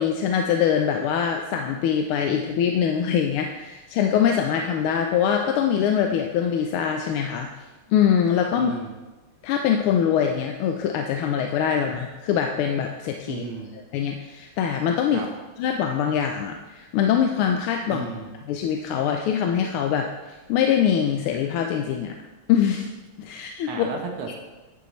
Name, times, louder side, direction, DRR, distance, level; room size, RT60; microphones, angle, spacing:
voice 1, 0.0-7.5 7.9-8.7 9.4-13.4 13.9-15.2 15.6-18.1 18.5-20.1 20.5-22.1 22.5-22.9 23.2-23.9, left 8 dB, 85° left, 3 dB, 1.5 m, -23 dB
voice 2, 8.5-8.9 13.3-13.7 15.1-15.3 17.9-18.3 23.7-24.4, right 5 dB, 90° right, 2 dB, 2.0 m, -34 dB
9.8 x 6.9 x 3.1 m, 1.2 s
omnidirectional pair, 2.3 m